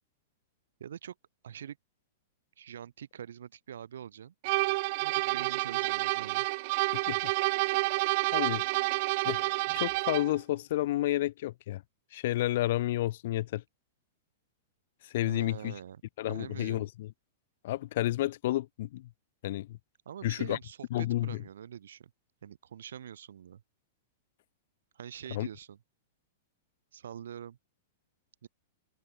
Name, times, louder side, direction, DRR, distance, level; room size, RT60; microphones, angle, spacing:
voice 1, 0.8-1.1 1.4-1.8 2.6-4.3 5.0-6.5 15.2-16.0 16.3-16.9 20.1-22.1 22.4-23.6 24.9-25.8 26.9-27.6 28.4-28.5, right 9 dB, 65° right, 6.0 m, -44 dB
sound 1, 4.4-10.4, right 25 dB, 50° right, 3.1 m, -29 dB
voice 2, 6.9-7.3 7.6-7.7 8.3-8.6 9.2-11.8 12.1-13.6 15.0-15.7 16.2-17.1 17.6-19.1 19.4-19.8 20.2-20.6 20.9-21.4 25.3-25.5, left 15 dB, 55° left, 2.4 m, -31 dB
figure-of-eight pair, 105°, 0 cm